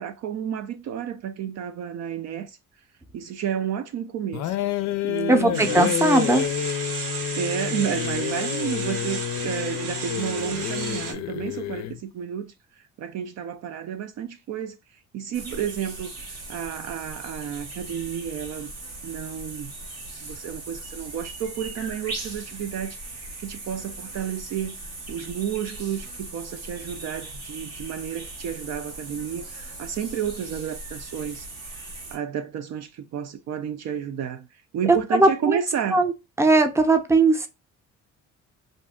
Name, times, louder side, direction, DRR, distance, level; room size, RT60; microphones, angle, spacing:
voice 1, 0.0-2.6 3.1-4.6 5.0-5.9 7.4-16.1 16.5-18.7 19.0-19.7 20.2-24.7 25.1-31.5 31.8-31.9 32.1-36.0, right 8 dB, 55° right, 0.4 m, -31 dB
sound 1, 4.3-12.0, left 11 dB, 55° left, 0.4 m, -29 dB
voice 2, 5.3-6.5 34.9-35.6 35.9-36.1 36.4-37.5, right 2 dB, 10° right, 0.6 m, -19 dB
sound 2, 5.5-11.1, right 4 dB, 70° right, 1.0 m, -33 dB
sound 3, 15.3-32.2, right 2 dB, 90° right, 1.3 m, -39 dB
2.6 x 2.2 x 3.5 m
supercardioid pair, 65°, 33 cm